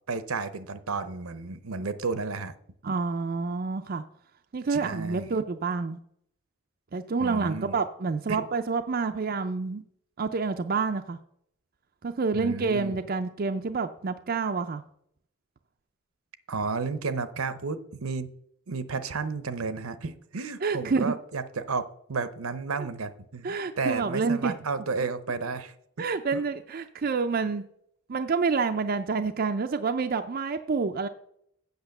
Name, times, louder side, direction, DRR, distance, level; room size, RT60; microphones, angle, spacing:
voice 1, 0.1-2.5 4.7-5.4 7.2-7.8 8.3-8.5 12.3-13.0 16.5-18.3 18.7-26.1 26.3-26.4, right 4 dB, 75° right, 13 dB, 0.7 m, -32 dB
voice 2, 2.8-4.0 4.5-6.0 6.9-9.8 10.2-11.2 12.0-14.8 20.6-21.1 23.4-24.5 26.0-27.6 28.1-31.1, right 4 dB, 40° right, 6 dB, 0.4 m, -28 dB
8.1 x 6.6 x 6.5 m, 0.71 s
head